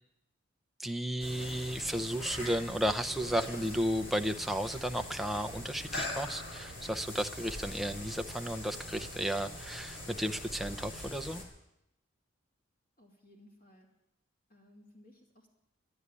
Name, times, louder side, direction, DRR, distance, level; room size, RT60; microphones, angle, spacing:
voice 1, 0.8-11.4, equal, ahead, 6 dB, 0.5 m, -33 dB
sound 1, 1.2-11.4, left 1 dB, 65° left, 3.3 m, -42 dB
voice 2, 13.0-13.9 14.5-15.5, left 1 dB, 45° left, -1 dB, 2.5 m, -59 dB
12.0 x 9.6 x 9.8 m, 0.87 s
head